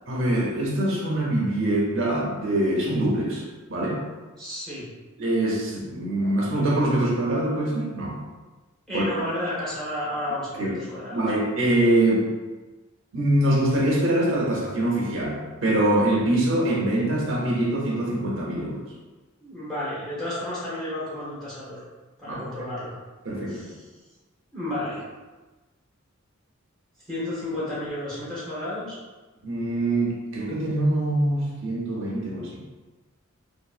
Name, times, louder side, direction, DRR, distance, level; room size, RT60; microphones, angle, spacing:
voice 1, 0.1-4.0 5.2-8.2 8.9-9.0 10.6-10.8 11.1-12.3 13.1-18.8 22.3-22.4 23.2-23.6 29.4-32.6, right 1 dB, 65° right, -3 dB, 0.7 m, -24 dB
voice 2, 4.4-4.9 8.9-11.2 19.4-21.8 22.2-23.0 23.5-23.9 24.5-25.1 27.1-29.0, left 1 dB, ahead, -10 dB, 0.9 m, -32 dB
2.7 x 2.7 x 2.4 m, 1.2 s
head